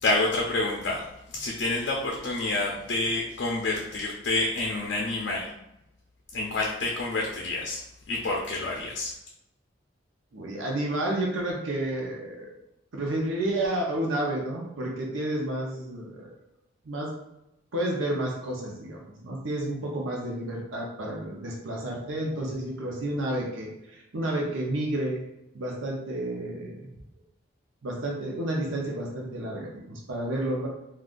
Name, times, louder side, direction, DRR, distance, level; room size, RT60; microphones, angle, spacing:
voice 1, 0.0-1.0 1.3-5.5 6.3-7.8 8.1-9.1, left 2 dB, 60° left, -1 dB, 0.4 m, -28 dB
voice 2, 10.3-12.5 12.9-16.3 16.8-17.1 17.7-25.2 25.5-26.9 27.8-30.7, right 1 dB, 90° right, -1 dB, 0.7 m, -31 dB
3.6 x 2.3 x 2.5 m, 0.84 s
head